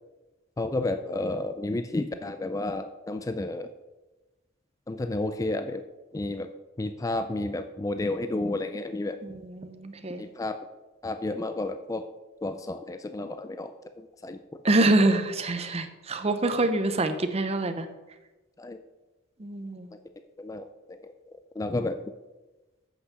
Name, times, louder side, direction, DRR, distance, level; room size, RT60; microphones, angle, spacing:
voice 1, 0.6-3.7 4.9-5.8 6.1-6.5 6.8-9.2 10.2-10.6 11.0-12.0 12.4-13.7 14.0-14.6 18.6-18.8 20.4-21.0 21.6-22.0, left 2 dB, 15° left, 8 dB, 0.3 m, -31 dB
voice 2, 9.2-10.2 14.6-17.9 19.4-19.9, right 2 dB, 30° right, 9 dB, 0.7 m, -25 dB
8.4 x 5.9 x 5.6 m, 1.1 s
head